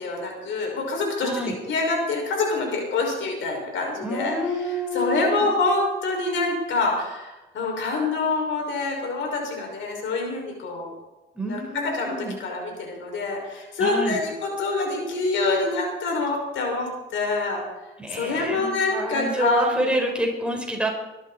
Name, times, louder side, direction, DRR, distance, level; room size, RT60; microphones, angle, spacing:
voice 1, 0.0-1.3 1.7-4.4 4.7-10.9 11.5-17.6 18.1-19.9, left 3 dB, 75° left, 1 dB, 6.0 m, -26 dB
voice 2, 1.2-1.5 4.0-5.5 11.3-12.4 13.8-14.2 18.0-20.9, right 1 dB, 5° right, 0 dB, 4.8 m, -28 dB
22.5 x 13.0 x 4.3 m, 1.0 s
cardioid pair, 90°, 20 cm